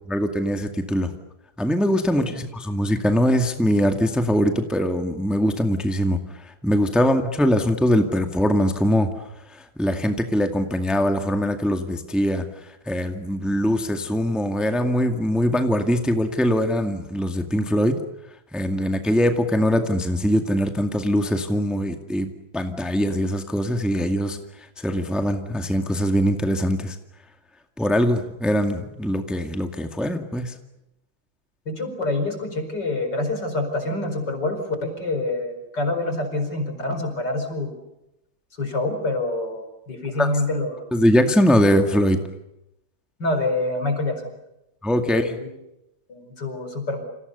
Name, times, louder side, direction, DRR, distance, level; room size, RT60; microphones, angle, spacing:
voice 1, 0.1-1.1 1.6-9.1 9.5-18.0 18.5-27.0 27.8-30.5 40.2-40.3 40.9-42.2 44.8-45.4, equal, ahead, 5 dB, 2.0 m, -22 dB
voice 2, 31.7-37.8 38.6-40.8 43.2-44.3 45.0-45.5 46.1-47.0, left 2 dB, 60° left, 6 dB, 5.6 m, -26 dB
29.5 x 27.5 x 6.9 m, 0.87 s
omnidirectional pair, 2.1 m